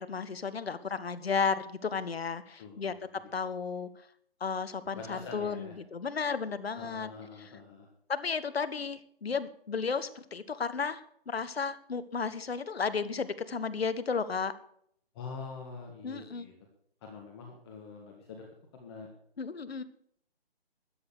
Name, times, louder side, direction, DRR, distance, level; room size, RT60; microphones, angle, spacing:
voice 1, 0.0-2.9 3.3-3.9 4.4-7.1 8.1-14.5 16.0-16.4 19.4-19.8, left 5 dB, 75° left, 13 dB, 1.3 m, -33 dB
voice 2, 2.6-3.3 4.9-5.8 6.8-7.9 15.1-16.5 17.0-18.4 18.7-19.1, left 4 dB, 25° left, 1 dB, 1.8 m, -45 dB
13.5 x 9.5 x 6.6 m, 0.66 s
figure-of-eight pair, 150°, 31 cm